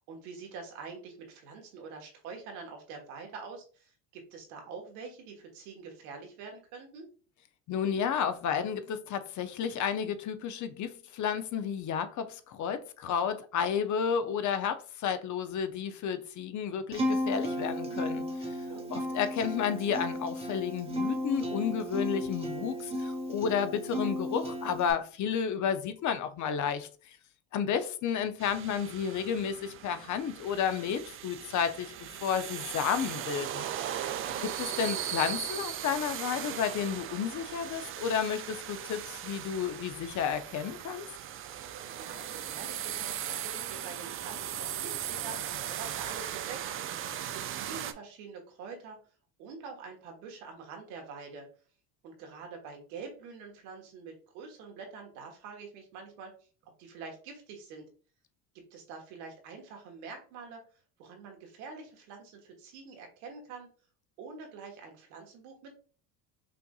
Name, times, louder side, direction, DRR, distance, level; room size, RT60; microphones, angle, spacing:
voice 1, 0.0-7.1 18.7-18.9 34.0-34.4 41.9-49.0 49.4-51.5 52.0-56.3 56.8-57.9 58.5-60.6 61.0-63.7 64.2-65.7, right 5 dB, 80° right, 1.5 m, -46 dB
voice 2, 7.7-18.3 18.9-26.9 27.5-33.7 34.6-41.1, left 7 dB, 45° left, 0.6 m, -32 dB
Acoustic guitar, 16.9-24.9, left 1 dB, 15° right, 1.1 m, -34 dB
sound 1, 28.4-47.9, right 10 dB, 35° right, 0.4 m, -38 dB
5.6 x 2.6 x 2.3 m
supercardioid pair, 95°, 43 cm